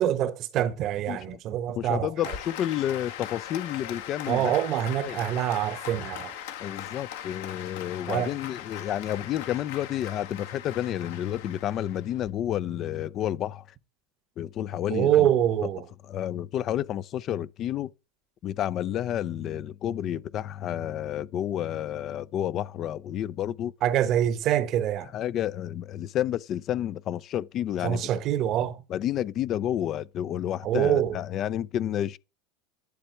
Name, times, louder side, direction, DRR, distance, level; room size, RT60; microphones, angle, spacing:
voice 1, 0.0-2.1 4.3-6.4 8.1-8.3 14.9-15.8 23.8-25.1 27.8-28.8 30.6-31.1, right 11 dB, 45° right, 1.0 m, -25 dB
voice 2, 1.1-1.4 1.8-4.5 4.9-5.2 6.6-13.7 14.4-15.3 16.1-17.9 18.4-23.7 25.1-28.2 28.9-32.2, left 11 dB, 40° left, 0.4 m, -30 dB
Applause, 2.2-12.3, left 10 dB, 75° left, 1.7 m, -40 dB
12.0 x 6.9 x 4.5 m
supercardioid pair, 115°, 0 cm